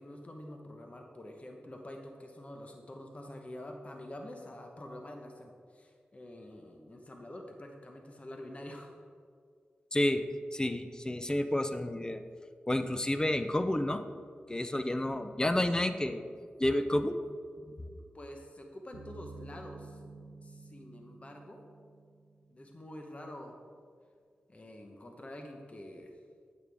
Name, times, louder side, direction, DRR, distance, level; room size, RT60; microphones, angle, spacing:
voice 1, 0.0-8.9 18.1-20.0 20.4-21.6 22.5-23.5 24.5-26.1, left 1 dB, 35° left, 2 dB, 1.1 m, -47 dB
voice 2, 9.9-10.2 10.5-12.2 12.7-14.0 14.5-16.2 16.6-17.2 17.7-17.8, left 1 dB, 20° left, 9 dB, 0.6 m, -30 dB
sound 1, 18.9-22.7, right 3 dB, 85° right, 0.8 m, -50 dB
9.0 x 8.3 x 3.5 m, 2.1 s
cardioid pair, 50°, 4 cm